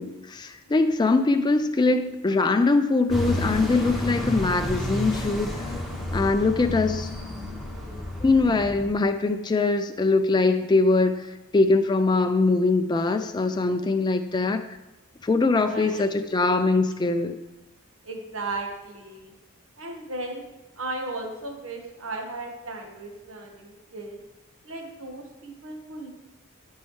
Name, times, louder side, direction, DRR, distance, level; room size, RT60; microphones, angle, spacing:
voice 1, 0.0-5.7 6.1-7.1 8.2-11.3 11.5-14.7 15.2-17.4, left 3 dB, 20° left, 7 dB, 0.3 m, -22 dB
sound 1, 3.1-8.9, left 1 dB, ahead, 1.3 m, -31 dB
voice 2, 7.6-8.2 13.8-13.9 15.6-16.0 18.0-19.3 19.8-20.4 20.8-24.2 24.6-26.1, right 2 dB, 70° right, 2 dB, 1.4 m, -36 dB
12.0 x 5.4 x 3.2 m, 1.1 s
head